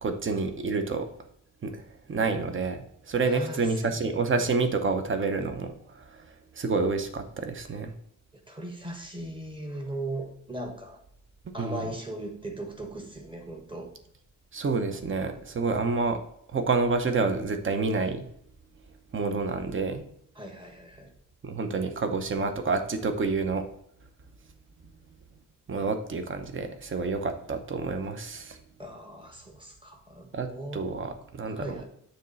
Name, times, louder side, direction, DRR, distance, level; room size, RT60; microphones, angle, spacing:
voice 1, 0.0-1.1 1.6-1.8 2.1-6.2 6.6-7.9 11.6-11.8 14.5-16.2 16.5-18.3 19.1-20.0 21.4-23.6 25.7-28.6 30.3-31.8, right 4 dB, 40° right, 7 dB, 0.8 m, -28 dB
voice 2, 3.1-4.2 8.5-11.0 11.5-13.9 20.3-21.1 28.8-30.9 31.4-31.8, right 1 dB, 15° right, 2 dB, 1.3 m, -38 dB
7.1 x 3.2 x 5.4 m, 0.69 s
wide cardioid pair, 150°, 32 cm